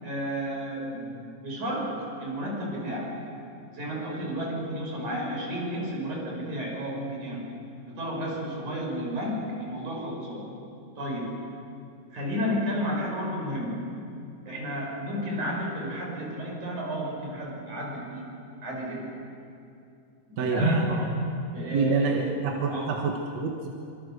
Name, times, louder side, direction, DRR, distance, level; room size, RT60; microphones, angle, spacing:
voice 1, 0.0-3.1 3.7-7.4 7.9-10.5 11.0-11.4 12.1-14.0 14.5-18.3 18.6-19.2 20.3-21.1 21.5-22.4 22.7-23.1, equal, 90° right, -1 dB, 6.9 m, -31 dB
voice 2, 20.4-20.8 21.7-23.7, right 4 dB, 65° right, 1 dB, 2.7 m, -27 dB
25.5 x 25.5 x 6.7 m, 2.6 s
omnidirectional pair, 3.3 m